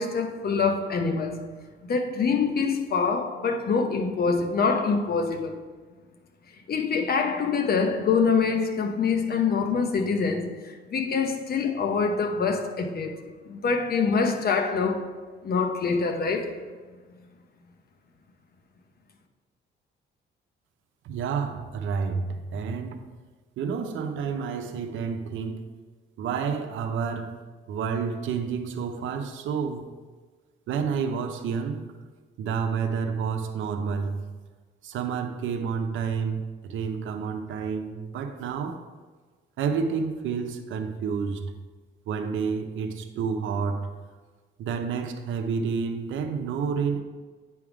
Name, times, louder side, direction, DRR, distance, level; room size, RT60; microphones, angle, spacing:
voice 1, 0.0-1.5 1.8-5.6 6.7-13.2 13.4-15.1 15.4-16.6, left 5 dB, 50° left, 0.9 m, -25 dB
voice 2, 21.0-23.0 23.6-25.6 26.2-27.4 27.7-29.9 30.7-31.8 32.4-34.2 34.8-38.8 39.6-41.5 42.1-43.9 44.6-47.0, right 6 dB, 75° right, 0.7 m, -29 dB
9.5 x 3.6 x 4.9 m
cardioid pair, 90°, 20 cm